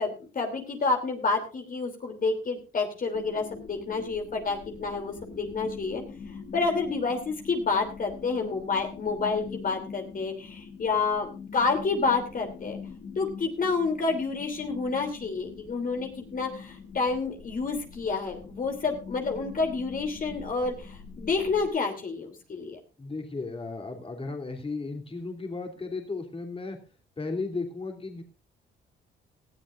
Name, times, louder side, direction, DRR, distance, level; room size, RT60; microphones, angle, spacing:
voice 1, 0.0-6.0 6.5-12.8 13.2-22.8, left 4 dB, 45° left, 4 dB, 3.0 m, -29 dB
sound 1, 3.1-21.7, left 5 dB, 60° left, 2.9 m, -44 dB
voice 2, 23.0-26.8 27.2-28.2, left 3 dB, 30° left, 3 dB, 3.1 m, -35 dB
19.0 x 13.0 x 2.5 m, 0.33 s
cardioid pair, 90°, 20 cm